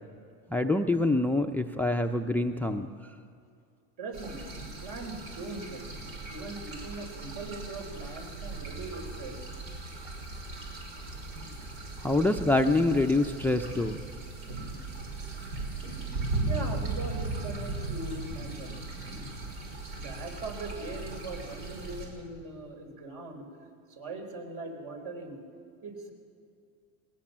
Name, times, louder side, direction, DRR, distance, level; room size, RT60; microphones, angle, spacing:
voice 1, 0.5-2.9 12.0-14.0, left 2 dB, 5° left, 8 dB, 0.5 m, -25 dB
voice 2, 4.0-4.4 4.8-5.8 6.3-9.4 16.5-18.7 19.0-19.2 19.9-23.5 23.9-25.4 25.8-26.1, right 3 dB, 55° right, 3 dB, 4.1 m, -40 dB
sound 1, 4.1-22.1, right 3 dB, 80° right, 5.7 m, -38 dB
19.5 x 19.0 x 7.4 m, 2.4 s
supercardioid pair, 110°, 40 cm